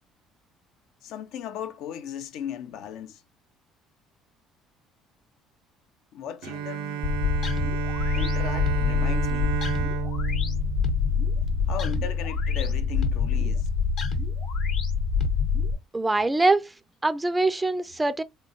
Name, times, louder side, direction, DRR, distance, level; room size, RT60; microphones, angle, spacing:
voice 1, 1.0-3.2 6.1-7.1 8.2-9.6 11.7-13.7, left 9 dB, 70° left, 0.5 m, -37 dB
Bowed string instrument, 6.4-11.9, right 11 dB, 90° right, 0.3 m, -32 dB
sound 1, 7.0-15.8, left 5 dB, 55° left, 0.9 m, -25 dB
voice 2, 15.9-16.7 17.0-18.2, right 2 dB, 15° right, 0.3 m, -23 dB
3.6 x 2.2 x 2.8 m
cardioid pair, 105°, 0 cm